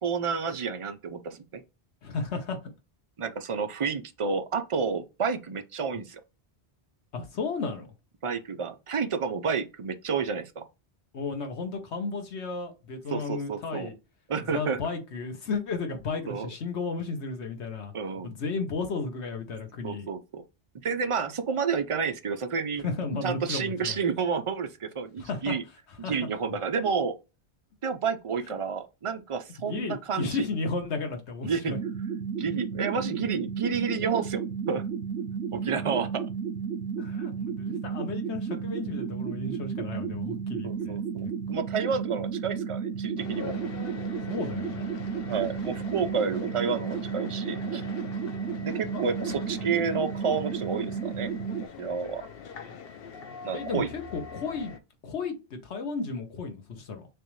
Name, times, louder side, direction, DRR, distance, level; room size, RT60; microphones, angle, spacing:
voice 1, 0.0-1.6 3.2-6.2 8.2-10.6 13.1-13.9 14.3-14.8 16.3-16.5 17.9-18.3 19.8-20.4 20.8-22.9 23.2-25.6 26.0-27.1 27.8-30.5 31.4-31.7 32.4-34.4 34.7-34.8 35.5-36.2 40.6-43.6 45.3-47.8 48.6-51.3 51.8-52.2 53.4-53.9, right 5 dB, 40° right, 0.5 m, -30 dB
voice 2, 2.0-2.6 7.1-7.9 11.1-13.9 14.5-17.9 18.2-20.1 22.8-24.0 25.2-25.5 26.0-26.1 26.5-26.6 29.7-31.8 36.9-41.3 44.3-44.9 53.5-54.8 55.0-57.1, left 4 dB, 80° left, 1.2 m, -33 dB
sound 1, 31.7-51.7, right 6 dB, 80° right, 0.9 m, -33 dB
sound 2, 43.2-54.8, left 6 dB, 65° left, 0.8 m, -42 dB
6.6 x 2.5 x 3.1 m
omnidirectional pair, 1.1 m